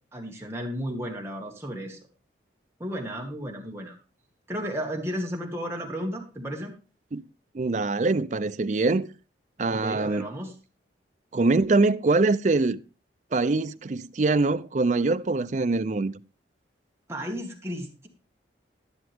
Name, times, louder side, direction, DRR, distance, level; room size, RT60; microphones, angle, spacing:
voice 1, 0.1-2.0 2.8-4.0 4.5-6.7 9.7-10.5 17.1-18.1, equal, 15° right, 1.9 m, -33 dB
voice 2, 7.5-9.1 9.6-10.3 11.3-12.8 13.3-16.2, right 3 dB, 40° right, 0.5 m, -23 dB
11.0 x 11.0 x 3.6 m
head